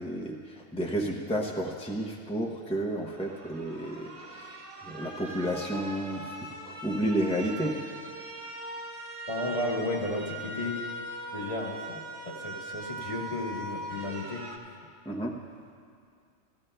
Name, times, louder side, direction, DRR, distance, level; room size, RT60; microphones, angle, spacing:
voice 1, 0.0-6.3 6.6-7.8 15.1-15.4, right 1 dB, 10° left, -1 dB, 0.4 m, -31 dB
sound 1, 3.0-14.6, right 1 dB, 30° right, 0.9 m, -41 dB
voice 2, 9.3-10.8 11.3-14.4, left 2 dB, 25° left, -1 dB, 1.2 m, -33 dB
16.0 x 14.5 x 2.2 m, 2.3 s
omnidirectional pair, 1.4 m